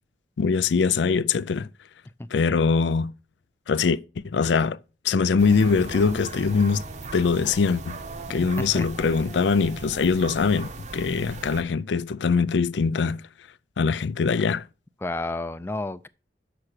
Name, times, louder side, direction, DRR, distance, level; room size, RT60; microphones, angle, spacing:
voice 1, 0.4-1.7 2.3-3.1 3.7-4.0 4.2-4.8 5.0-6.8 7.1-8.0 8.3-13.2 13.8-14.7, left 5 dB, 80° left, 0.4 m, -22 dB
sound 1, 5.4-11.6, right 3 dB, 40° right, 0.8 m, -38 dB
voice 2, 15.0-16.1, left 2 dB, 15° left, 0.4 m, -30 dB
7.5 x 5.9 x 6.6 m
head